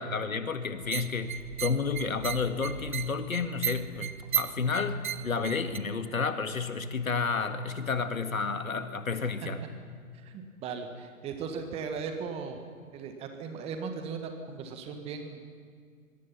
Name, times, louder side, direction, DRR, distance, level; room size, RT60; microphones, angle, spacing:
voice 1, 0.0-9.6, left 4 dB, 70° left, 8 dB, 2.0 m, -31 dB
sound 1, 0.8-5.8, right 9 dB, 35° right, 0.7 m, -36 dB
voice 2, 10.2-12.6 12.9-15.4, right 5 dB, 15° right, 6 dB, 1.7 m, -37 dB
25.0 x 21.5 x 5.8 m, 2.1 s
figure-of-eight pair, 130°, 43 cm